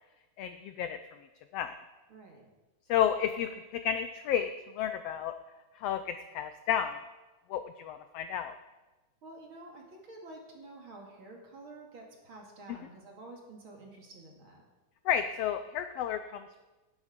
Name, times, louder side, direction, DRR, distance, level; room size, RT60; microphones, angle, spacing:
voice 1, 0.4-1.0 1.5-1.8 2.9-4.5 4.7-5.3 5.8-7.0 7.5-8.5 15.0-16.6, left 9 dB, 85° left, 9 dB, 1.4 m, -31 dB
voice 2, 2.1-2.5 9.2-14.6, right 2 dB, 45° right, 0 dB, 2.9 m, -49 dB
17.5 x 10.0 x 5.1 m, 1.1 s
omnidirectional pair, 3.5 m